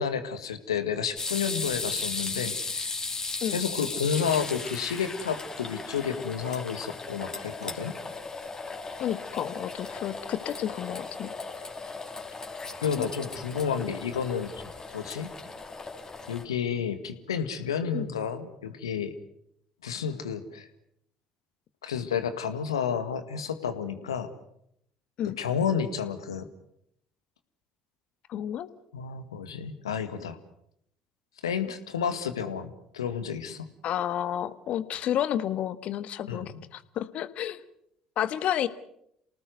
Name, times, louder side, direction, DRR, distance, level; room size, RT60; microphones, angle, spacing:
voice 1, 0.0-2.9 3.5-7.9 12.8-14.5 14.9-15.3 16.3-19.1 19.8-20.7 21.8-24.3 25.4-26.5 28.9-30.4 31.4-33.6 36.3-36.6, left 7 dB, 85° left, 10 dB, 1.8 m, -31 dB
sound 1, 1.2-16.4, left 3 dB, 25° left, 4.3 m, -36 dB
voice 2, 9.0-11.3 13.0-13.1 17.9-18.1 25.2-25.4 28.3-28.7 33.8-37.6 38.2-38.7, left 11 dB, 55° left, 14 dB, 1.5 m, -31 dB
28.5 x 19.0 x 7.8 m, 0.75 s
figure-of-eight pair, 55°, 3 cm